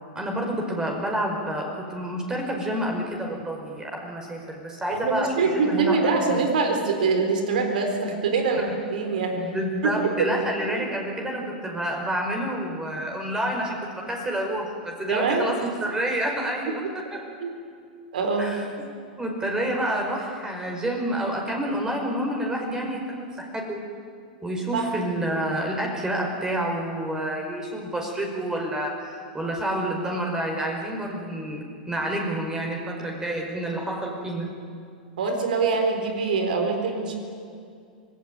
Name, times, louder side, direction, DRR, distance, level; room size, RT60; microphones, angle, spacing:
voice 1, 0.1-6.4 8.6-8.7 9.3-17.2 18.4-18.7 19.2-23.8 24.4-34.5, right 1 dB, 15° right, 0 dB, 5.1 m, -29 dB
voice 2, 4.9-9.4 9.8-10.3 10.7-10.9 15.1-15.5 17.4-17.5 18.1-18.6 24.7-24.9 35.2-37.1, right 4 dB, 70° right, 4 dB, 4.1 m, -24 dB
26.0 x 18.5 x 9.5 m, 2.3 s
hypercardioid pair, 100°, 5 cm